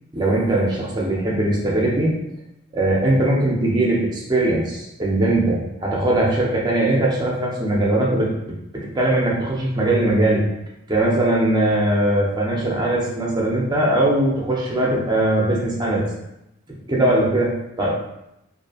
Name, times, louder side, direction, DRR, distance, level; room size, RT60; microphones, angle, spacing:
voice 1, 0.1-2.2 2.7-8.3 8.7-10.4 10.9-16.0 16.9-17.5 17.8-17.9, right 1 dB, 20° right, -3 dB, 0.5 m, -20 dB
2.7 x 2.5 x 2.3 m, 0.87 s
head